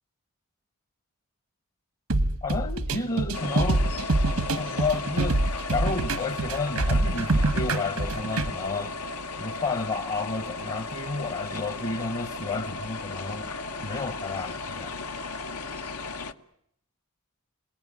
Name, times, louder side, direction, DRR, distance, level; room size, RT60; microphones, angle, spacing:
sound 1, 2.1-8.5, right 2 dB, 90° right, 1.4 m, -25 dB
voice 1, 2.4-3.9 4.5-5.4 5.7-9.0 9.4-14.9, left 3 dB, 35° left, 1.0 m, -31 dB
sound 2, 3.3-16.3, left 3 dB, 85° left, 1.2 m, -35 dB
27.5 x 19.0 x 9.9 m
head